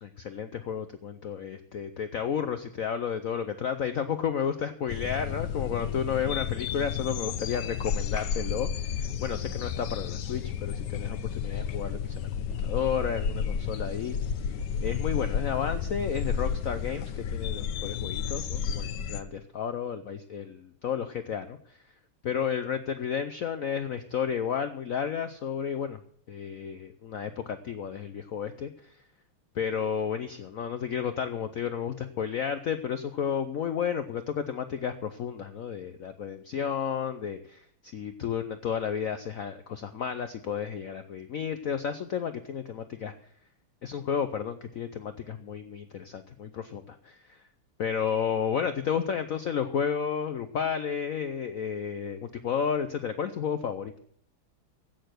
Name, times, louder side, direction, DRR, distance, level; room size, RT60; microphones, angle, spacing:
voice 1, 0.0-12.3 12.6-21.8 22.2-26.0 26.3-29.0 29.5-43.1 43.8-47.4 47.8-53.9, left 7 dB, 90° left, 10 dB, 0.7 m, -32 dB
sound 1, 4.9-19.2, left 7 dB, 65° left, 1.2 m, -32 dB
16.0 x 6.7 x 7.8 m, 0.63 s
omnidirectional pair, 2.4 m